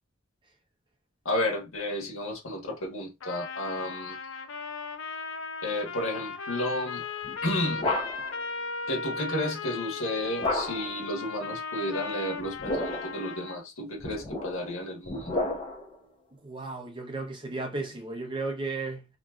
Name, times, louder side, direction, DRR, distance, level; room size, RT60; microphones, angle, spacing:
voice 1, 1.2-4.2 5.6-7.1 7.4-7.9 8.9-15.4, left 1 dB, 90° left, 1.4 m, -32 dB
Trumpet, 3.2-13.6, left 4 dB, 65° left, 0.5 m, -37 dB
sound 1, 7.2-8.4 10.4-11.0 12.4-13.2 14.0-15.9, left 2 dB, 25° left, 0.7 m, -32 dB
voice 2, 16.4-19.1, right 3 dB, 25° right, 0.6 m, -34 dB
3.0 x 2.6 x 2.3 m
head